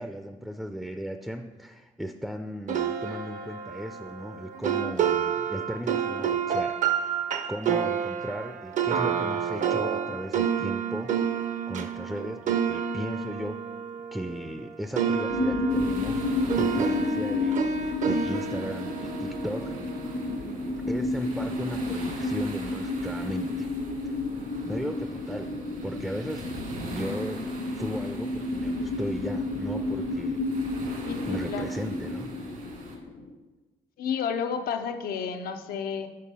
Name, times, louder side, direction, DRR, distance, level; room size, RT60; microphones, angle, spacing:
voice 1, 0.0-13.6 14.1-19.8 20.9-23.7 24.1-24.2 24.7-25.5 25.8-30.4 31.3-32.3, equal, ahead, 6 dB, 0.4 m, -36 dB
sound 1, 2.7-14.7 15.0-20.2, right 7 dB, 55° right, 0.6 m, -29 dB
sound 2, 15.3-33.3, left 2 dB, 70° left, 1.1 m, -31 dB
sound 3, 15.7-33.0, right 2 dB, 75° right, 1.7 m, -44 dB
voice 2, 31.0-31.8 34.0-36.1, left 6 dB, 90° left, 7 dB, 0.6 m, -31 dB
6.6 x 5.4 x 5.3 m, 1.2 s
cardioid pair, 100°, 15 cm